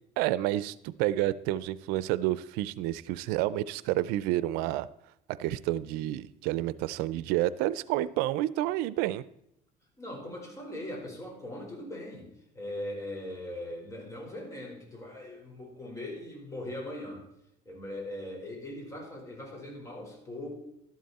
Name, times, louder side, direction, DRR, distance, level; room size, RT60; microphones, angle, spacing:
voice 1, 0.2-4.9 5.4-9.2, right 15 dB, 90° right, 18 dB, 0.5 m, -29 dB
voice 2, 10.0-17.2 17.6-20.6, left 1 dB, 20° left, 0 dB, 4.5 m, -40 dB
12.5 x 11.0 x 4.2 m, 0.79 s
cardioid pair, 125°, 15 cm